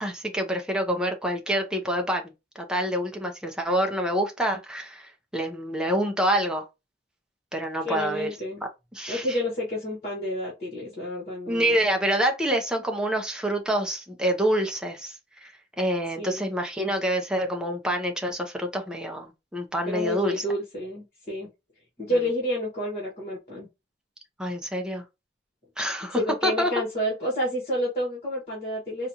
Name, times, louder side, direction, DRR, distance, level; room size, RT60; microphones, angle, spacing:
voice 1, 0.0-6.6 7.5-8.3 8.9-9.4 11.5-15.2 15.4-15.5 15.8-20.4 24.4-25.0 25.8-26.7, equal, 5° right, 0.6 m, -27 dB
voice 2, 7.8-8.6 9.1-11.8 16.2-16.4 19.8-21.5 22.0-23.7 26.1-29.1, equal, 35° left, 1.5 m, -29 dB
4.0 x 2.4 x 2.8 m
head